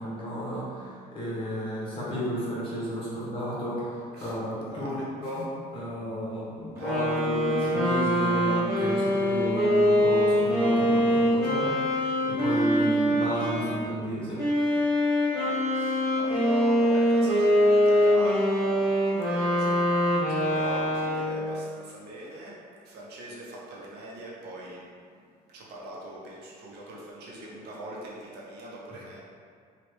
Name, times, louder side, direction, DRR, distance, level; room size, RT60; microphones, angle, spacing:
voice 1, 0.0-14.4 28.9-29.0, equal, 30° left, -8 dB, 1.2 m, -32 dB
voice 2, 4.7-5.0 6.8-7.3 15.3-19.9 20.4-22.5 22.9-24.8 25.5-29.2, right 1 dB, 75° right, -5 dB, 0.8 m, -41 dB
sound 1, 6.8-13.8 14.4-21.5, equal, 15° right, 1.5 m, -24 dB
3.1 x 2.4 x 3.1 m, 2.1 s
cardioid pair, 110°, 17 cm